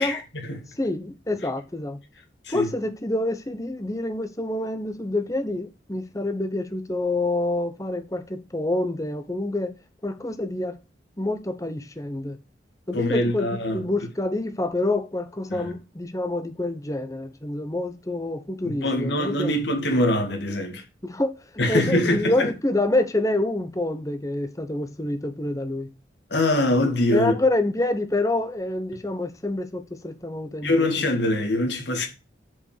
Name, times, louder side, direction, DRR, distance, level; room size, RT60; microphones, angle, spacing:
voice 1, 0.0-0.7 2.4-2.7 12.9-13.9 15.5-15.7 18.8-20.8 21.6-22.5 26.3-27.3 30.6-32.1, left 1 dB, 70° left, 2.2 m, -23 dB
voice 2, 0.8-2.0 2.5-9.7 10.0-10.8 11.2-12.4 12.9-19.5 21.0-21.3 21.7-25.9 27.1-30.7, left 2 dB, 20° left, 1.0 m, -27 dB
7.0 x 5.4 x 6.5 m
head